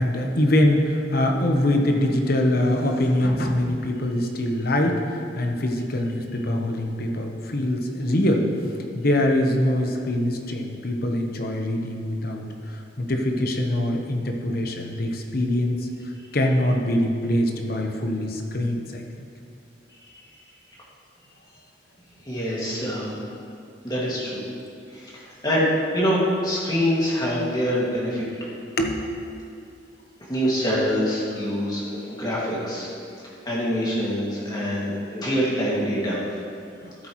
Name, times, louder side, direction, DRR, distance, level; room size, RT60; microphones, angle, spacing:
voice 1, 0.0-15.9 16.3-19.3 28.8-29.0 36.8-36.9, left 1 dB, 55° left, 2 dB, 1.0 m, -23 dB
voice 2, 22.3-23.1 23.8-24.5 24.9-28.5 30.3-32.9 33.4-36.2, equal, 25° left, -6 dB, 2.2 m, -25 dB
13.5 x 8.3 x 3.1 m, 2.5 s
head